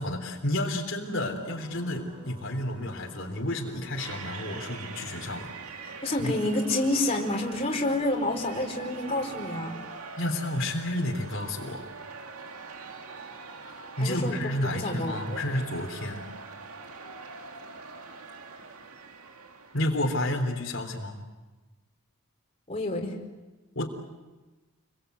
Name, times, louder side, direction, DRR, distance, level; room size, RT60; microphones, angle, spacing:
voice 1, 0.0-5.5 6.2-6.3 10.2-11.9 13.6-16.3 19.7-21.2 23.8-23.9, left 1 dB, 60° left, 1 dB, 3.6 m, -31 dB
sound 1, 1.1-9.9, equal, 25° right, 6.4 m, -50 dB
sound 2, 4.0-20.2, right 4 dB, 85° right, 2.2 m, -43 dB
voice 2, 6.0-9.8 14.0-14.4 14.7-15.4 22.7-23.2, left 1 dB, 25° left, -1 dB, 4.4 m, -28 dB
29.5 x 23.0 x 8.2 m, 1.2 s
head